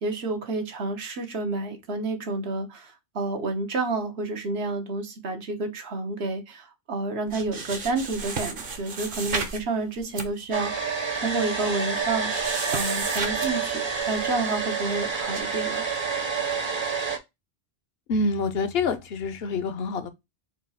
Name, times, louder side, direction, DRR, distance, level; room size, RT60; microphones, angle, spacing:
voice 1, 0.0-12.3 12.7-13.8 14.1-15.8, right 3 dB, 80° right, 1.2 m, -30 dB
sound 1, 7.3-9.6 10.0-10.3 11.0-11.1 11.3-11.4 12.0-13.5 14.0-14.3 15.3-15.4, right 4 dB, 60° right, 1.0 m, -33 dB
Domestic sounds home sounds, 10.5-17.2, right 5 dB, 30° right, 0.7 m, -28 dB
voice 2, 18.1-20.1, left 3 dB, 70° left, 0.9 m, -26 dB
4.4 x 2.4 x 4.0 m
omnidirectional pair, 1.1 m